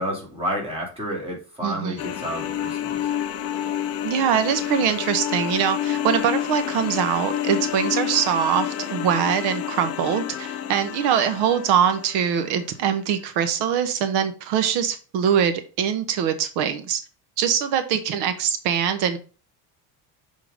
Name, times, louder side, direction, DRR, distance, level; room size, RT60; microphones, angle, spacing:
voice 1, 0.0-3.1, equal, 15° right, -1 dB, 2.2 m, -30 dB
voice 2, 1.6-2.0 4.0-17.0 17.4-19.2, right 8 dB, 80° right, 10 dB, 0.9 m, -23 dB
sound 1, 2.0-12.7, left 11 dB, 40° left, 0.7 m, -29 dB
6.4 x 3.8 x 4.8 m, 0.36 s
cardioid pair, 165°, 39 cm